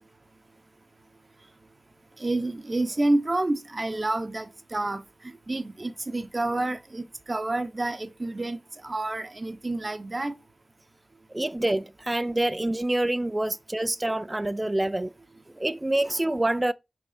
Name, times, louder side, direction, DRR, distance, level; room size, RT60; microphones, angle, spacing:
voice 1, 2.2-10.3, right 2 dB, 40° right, 1.0 m, -29 dB
voice 2, 11.3-15.1 15.5-16.7, right 1 dB, 25° right, 0.5 m, -26 dB
6.4 x 4.6 x 5.9 m
wide cardioid pair, 60°, 0 cm